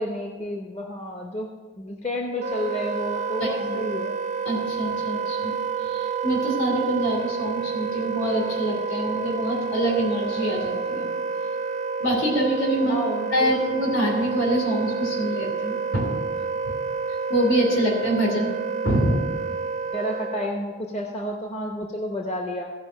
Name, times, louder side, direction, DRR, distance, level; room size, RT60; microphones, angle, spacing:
voice 1, 0.0-1.5 1.8-4.2 12.8-13.8 19.9-22.7, left 1 dB, 35° left, 1 dB, 0.8 m, -31 dB
Wind instrument woodwind instrument, 2.4-20.6, right 5 dB, 35° right, 0.4 m, -29 dB
voice 2, 3.4-3.9 4.4-5.5 5.8-11.1 12.0-12.9 13.3-16.1 16.7-16.8 17.3-18.5 18.8-19.2, right 1 dB, 90° left, -2 dB, 3.1 m, -25 dB
15.0 x 5.3 x 6.3 m, 1.3 s
head